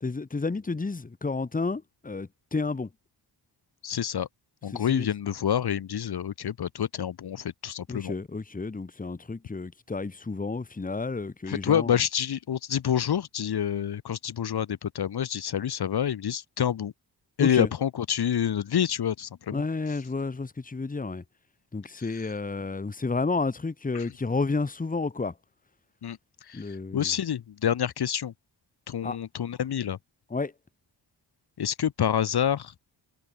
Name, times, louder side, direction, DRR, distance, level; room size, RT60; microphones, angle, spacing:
voice 1, 0.0-2.9 4.7-5.1 7.9-11.9 17.4-17.7 19.5-21.2 21.7-25.4 26.5-27.1 29.0-29.2 30.3-30.5, left 3 dB, 20° left, 2.8 m, -31 dB
voice 2, 3.8-4.3 4.6-8.1 11.5-16.9 17.4-19.6 23.9-24.0 26.0-28.3 28.9-30.0 31.6-32.7, left 9 dB, 65° left, 3.4 m, -28 dB
wide cardioid pair, 170°, 42 cm